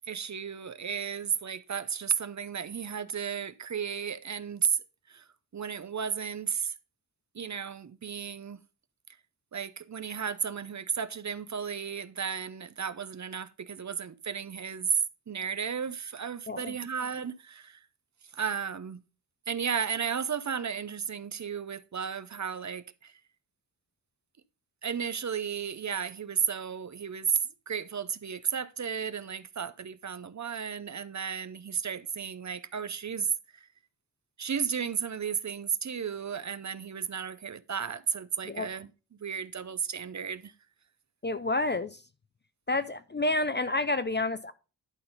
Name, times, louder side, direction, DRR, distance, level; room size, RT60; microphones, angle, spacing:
voice 1, 0.1-4.8 5.1-6.7 7.3-8.6 9.5-15.0 15.3-17.8 18.3-19.0 19.5-23.1 24.8-27.4 27.7-33.7 34.4-38.9 39.2-40.5, right 7 dB, 40° right, 0.6 m, -33 dB
voice 2, 16.5-16.8 38.4-38.7 41.2-42.0 42.7-44.5, left 2 dB, 25° left, 0.4 m, -29 dB
11.0 x 3.9 x 5.3 m
wide cardioid pair, 125°, 43 cm